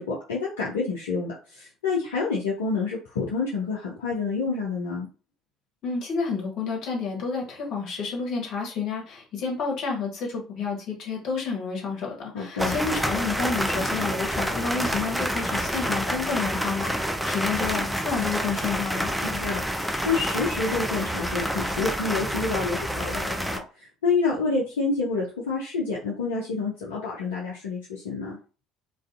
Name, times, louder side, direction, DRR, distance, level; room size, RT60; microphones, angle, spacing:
voice 1, 0.0-5.1 12.3-12.7 19.2-23.6 24.0-28.4, left 4 dB, 75° left, -4 dB, 0.5 m, -28 dB
voice 2, 5.8-19.1, left 5 dB, 55° left, -1 dB, 1.0 m, -30 dB
sound 1, 12.6-23.6, equal, ahead, 0.4 m, -28 dB
2.4 x 2.4 x 2.4 m, 0.35 s
figure-of-eight pair, 55°, 0 cm